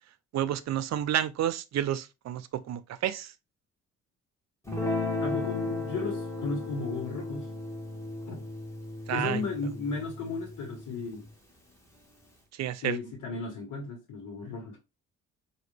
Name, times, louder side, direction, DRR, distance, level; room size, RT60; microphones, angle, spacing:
voice 1, 0.3-3.3 9.1-9.4 12.6-13.0, right 11 dB, 60° right, 0.6 m, -30 dB
Guitar, 4.6-11.2, left 2 dB, 10° left, 1.6 m, -35 dB
voice 2, 5.2-7.5 8.2-8.4 9.1-11.3 12.8-14.8, left 4 dB, 75° left, 1.3 m, -35 dB
4.9 x 2.6 x 3.3 m
cardioid pair, 90°, 30 cm